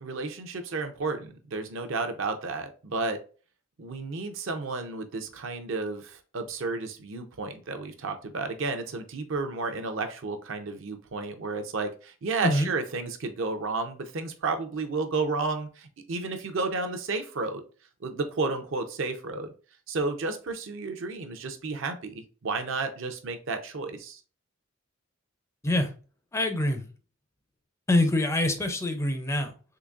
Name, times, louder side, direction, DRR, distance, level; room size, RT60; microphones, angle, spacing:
voice 1, 0.0-3.2 3.8-17.6 18.0-19.5 19.9-24.2, right 3 dB, 65° right, 0.6 m, -32 dB
voice 2, 26.3-26.8 27.9-29.5, left 1 dB, 15° left, 0.4 m, -25 dB
3.9 x 2.8 x 2.3 m
head